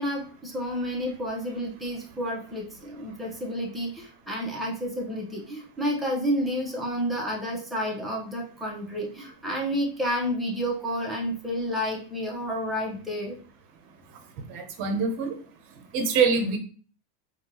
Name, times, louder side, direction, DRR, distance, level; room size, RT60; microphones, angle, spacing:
voice 1, 0.0-13.4, equal, 5° right, -3 dB, 1.1 m, -30 dB
voice 2, 14.5-15.3 15.9-16.6, right 5 dB, 55° right, 5 dB, 0.8 m, -24 dB
3.5 x 2.4 x 3.0 m, 0.41 s
hypercardioid pair, 100°, 0 cm